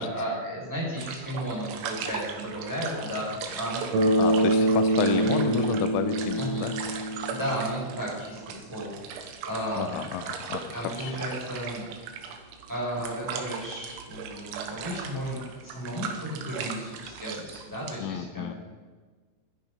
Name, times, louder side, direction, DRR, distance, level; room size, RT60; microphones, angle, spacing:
voice 1, 0.0-4.2 4.5-4.6 5.2-5.6 6.4-6.7 7.3-8.4 8.7-9.9 10.7-11.8 12.7-18.5, equal, 5° right, -5 dB, 3.7 m, -34 dB
sound 1, 1.0-18.0, right 6 dB, 85° right, 3.6 m, -38 dB
Bass guitar, 3.9-7.9, right 1 dB, 35° right, 4.0 m, -25 dB
voice 2, 4.2-6.7 9.8-11.1 18.0-18.5, left 9 dB, 90° left, 9 dB, 3.1 m, -31 dB
12.0 x 10.5 x 5.1 m, 1.4 s
omnidirectional pair, 5.5 m